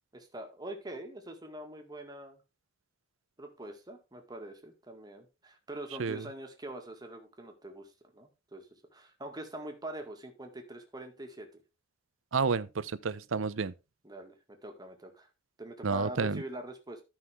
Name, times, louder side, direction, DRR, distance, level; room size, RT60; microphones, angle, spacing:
voice 1, 0.1-2.4 3.4-8.7 8.9-11.6 13.3-13.5 14.0-15.3 15.6-17.0, right 1 dB, 20° right, 1.9 m, -44 dB
voice 2, 12.3-13.7 15.8-16.4, right 4 dB, 70° right, 0.6 m, -30 dB
13.5 x 5.7 x 3.5 m
head